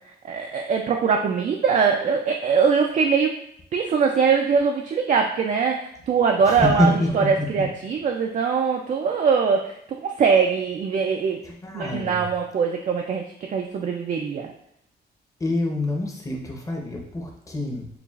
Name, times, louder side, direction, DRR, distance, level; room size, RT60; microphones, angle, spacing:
voice 1, 0.2-3.3 3.7-9.8 10.0-11.4 11.7-14.5, right 6 dB, 45° right, 2 dB, 0.4 m, -22 dB
voice 2, 6.5-7.7 11.4-12.3 15.4-17.9, left 1 dB, 20° left, -1 dB, 0.8 m, -26 dB
6.9 x 2.4 x 2.4 m, 0.74 s
wide cardioid pair, 140°, 18 cm